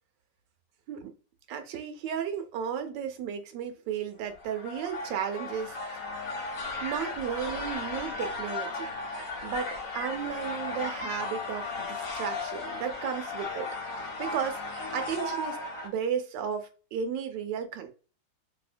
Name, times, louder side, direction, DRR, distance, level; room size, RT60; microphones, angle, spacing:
voice 1, 1.5-6.0 6.8-17.9, right 8 dB, 80° right, 1.2 m, -34 dB
sound 1, 4.3-15.9, left 3 dB, 55° left, 1.1 m, -36 dB
2.7 x 2.7 x 2.4 m
omnidirectional pair, 2.0 m